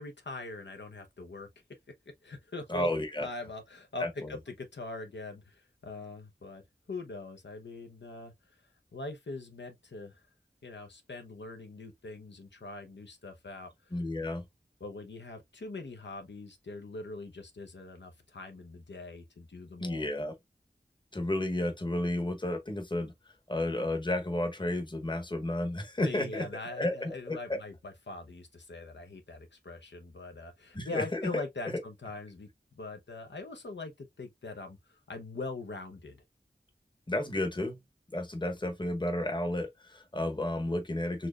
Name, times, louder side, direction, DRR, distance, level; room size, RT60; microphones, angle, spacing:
voice 1, 0.0-1.5 2.2-2.9 3.2-6.6 6.9-8.6 8.9-10.2 10.6-13.9 14.8-20.1 26.0-32.5 32.7-36.2, left 3 dB, 80° left, 0.7 m, -42 dB
voice 2, 2.7-3.3 4.0-4.3 13.9-14.4 19.8-20.3 21.1-23.1 23.5-27.6 30.7-31.4 37.1-37.8 38.1-41.3, left 1 dB, 25° left, 0.9 m, -32 dB
4.2 x 3.0 x 2.3 m
wide cardioid pair, 55°, 18 cm